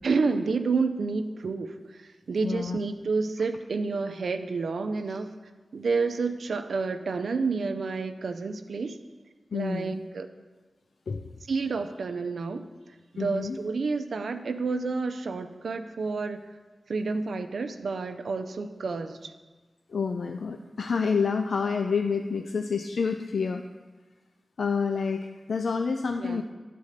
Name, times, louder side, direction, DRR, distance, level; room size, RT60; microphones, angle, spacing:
voice 1, 0.0-5.3 5.7-9.0 9.5-10.3 11.5-12.6 13.1-16.4 16.9-19.3 26.2-26.4, right 4 dB, 85° right, 7 dB, 0.5 m, -29 dB
voice 2, 2.4-2.8 9.5-10.0 11.1-11.3 13.2-13.6 19.9-23.6 24.6-26.4, left 5 dB, 80° left, 6 dB, 0.4 m, -28 dB
11.0 x 4.2 x 6.5 m, 1.3 s
wide cardioid pair, 65°, 0 cm